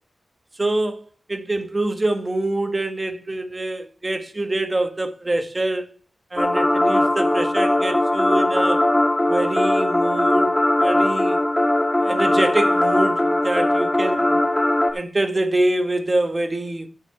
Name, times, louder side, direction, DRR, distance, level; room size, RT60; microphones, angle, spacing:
voice 1, 0.5-5.9 6.3-8.9 9.3-11.4 12.0-14.4 14.9-16.9, right 2 dB, 20° right, 1.4 m, -25 dB
sound 1, 6.4-14.9, left 1 dB, 10° left, 2.1 m, -19 dB
10.5 x 6.3 x 6.7 m
wide cardioid pair, 170°, 0 cm